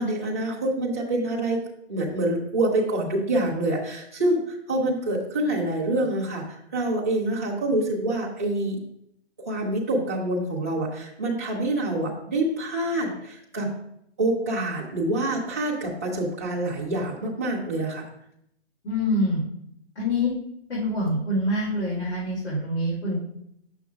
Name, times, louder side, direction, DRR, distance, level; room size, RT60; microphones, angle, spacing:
voice 1, 0.0-1.6 1.9-8.8 9.4-13.7 14.2-18.0, right 1 dB, 15° right, -8 dB, 0.6 m, -26 dB
voice 2, 18.8-19.4 20.0-20.3 20.7-23.2, left 1 dB, 75° left, -7 dB, 2.6 m, -25 dB
8.0 x 6.2 x 2.3 m, 0.75 s
hypercardioid pair, 180°, 34 cm